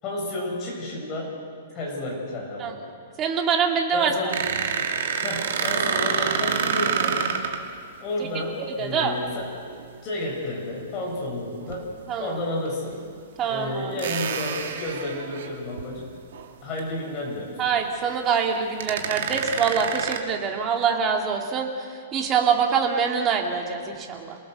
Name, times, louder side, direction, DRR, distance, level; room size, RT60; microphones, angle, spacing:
voice 1, 0.0-1.4 1.7-2.8 3.9-4.5 5.2-7.3 8.0-9.6 10.0-11.9 12.2-13.0 13.5-16.1 16.6-17.6, left 1 dB, 25° left, -2 dB, 6.8 m, -31 dB
voice 2, 3.2-4.3 8.8-9.1 12.1-12.4 13.4-13.9 17.6-21.7 22.1-24.4, right 6 dB, 20° right, 2 dB, 2.3 m, -24 dB
sound 1, 4.3-7.6 9.7-10.0 11.6-11.8 12.7-12.8 14.0-15.8 16.3-16.5 16.8-16.9 18.4-18.5 18.8-20.2, right 7 dB, 70° right, 2.4 m, -27 dB
28.0 x 19.5 x 6.7 m, 2.2 s
hypercardioid pair, 165°, 0 cm